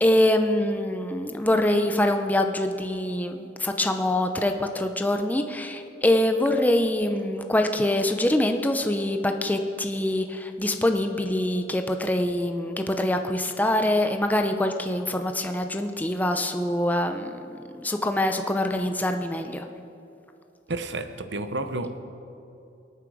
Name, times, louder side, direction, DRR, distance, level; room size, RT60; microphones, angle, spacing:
voice 1, 0.0-19.7, left 1 dB, 10° left, 5 dB, 0.6 m, -24 dB
voice 2, 20.7-22.0, right 2 dB, 70° right, 9 dB, 0.9 m, -31 dB
24.0 x 9.0 x 4.9 m, 2.7 s
head